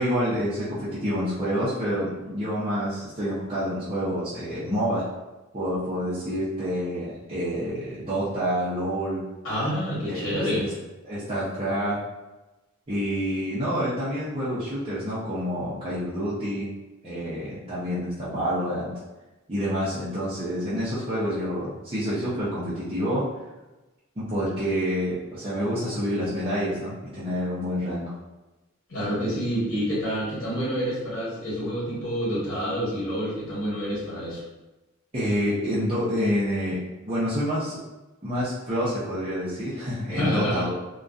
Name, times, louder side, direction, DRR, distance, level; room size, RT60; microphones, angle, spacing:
voice 1, 0.0-5.0 5.5-9.2 10.1-10.7 11.0-12.0 12.9-16.7 17.0-18.9 19.5-23.2 24.2-28.1 35.1-36.8 37.1-37.8 38.2-40.7, equal, 25° right, -11 dB, 0.6 m, -28 dB
voice 2, 9.4-10.7 28.9-34.4 40.1-40.7, equal, 75° left, -8 dB, 1.0 m, -28 dB
2.5 x 2.2 x 2.3 m, 1.1 s
head